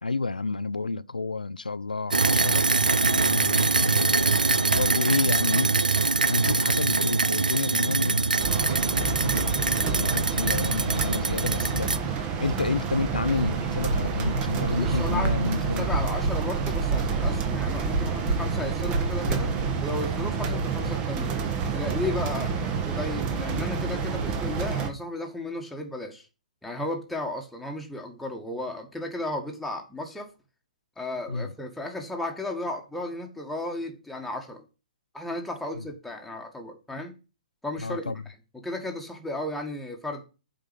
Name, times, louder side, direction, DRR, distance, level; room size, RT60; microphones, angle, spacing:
voice 1, 0.0-2.7 3.1-5.7 6.3-8.6 9.0-9.7 10.0-11.9 12.2-16.1 31.3-31.5 35.7-35.8 37.8-38.2, left 3 dB, 90° left, 0.4 m, -30 dB
sound 1, 2.1-12.0, right 3 dB, 85° right, 0.6 m, -24 dB
sound 2, 8.4-24.9, right 5 dB, 25° right, 1.3 m, -29 dB
sound 3, 13.3-19.7, right 2 dB, 65° right, 4.5 m, -30 dB
voice 2, 14.8-19.5 19.8-21.4 21.7-26.3 26.6-30.3 31.0-34.7 35.1-37.1 37.6-38.1 38.5-40.2, left 2 dB, ahead, 1.6 m, -34 dB
7.6 x 4.9 x 6.8 m
figure-of-eight pair, 130°, 4 cm